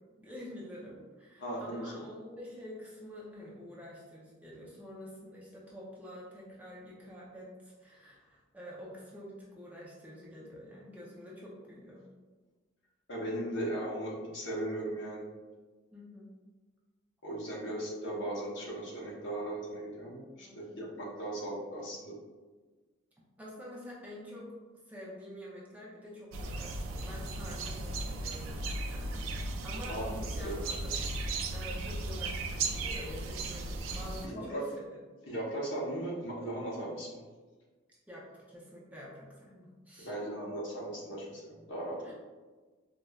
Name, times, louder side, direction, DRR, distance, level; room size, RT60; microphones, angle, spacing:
voice 1, 0.0-12.0 15.9-16.3 20.4-20.7 23.4-24.5 24.9-31.0 31.5-34.9 38.1-40.2 42.0-42.1, left 1 dB, 10° right, -6 dB, 0.4 m, -47 dB
voice 2, 1.4-1.9 13.1-15.2 17.2-22.1 29.9-30.5 34.2-34.7 35.3-37.2 40.0-42.1, right 1 dB, 65° left, -4 dB, 0.8 m, -37 dB
sound 1, 26.3-34.3, right 2 dB, 80° right, 0.3 m, -36 dB
4.1 x 2.1 x 2.3 m, 1.3 s
head